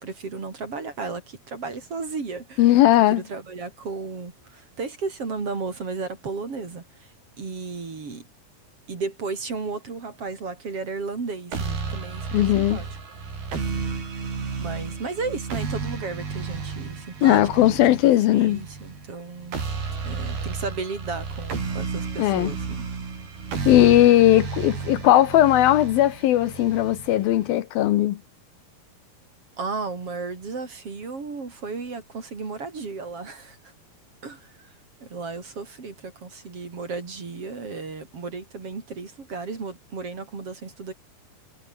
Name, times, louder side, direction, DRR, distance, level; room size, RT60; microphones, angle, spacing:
voice 1, 0.0-2.7 3.1-8.3 8.9-12.9 13.7-13.9 14.6-19.6 20.0-22.9 24.0-24.4 29.6-33.6 34.2-34.7 35.0-40.9, right 4 dB, 40° right, 4.3 m, -34 dB
voice 2, 2.6-3.2 12.3-12.8 17.2-18.6 22.2-22.5 23.7-28.2, left 14 dB, 75° left, 2.8 m, -18 dB
sound 1, 11.5-27.5, right 5 dB, 75° right, 8.1 m, -32 dB
omnidirectional pair, 4.5 m